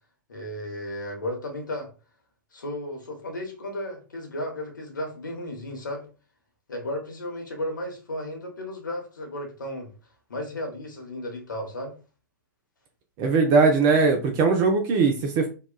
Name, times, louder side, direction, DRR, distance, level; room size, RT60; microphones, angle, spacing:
voice 1, 0.3-1.9 2.5-6.0 6.7-9.9 10.3-11.9, left 1 dB, 80° left, 2 dB, 0.8 m, -34 dB
voice 2, 13.2-15.5, right 4 dB, 35° right, 4 dB, 0.5 m, -20 dB
2.9 x 2.2 x 2.2 m, 0.34 s
figure-of-eight pair, 95°, 10 cm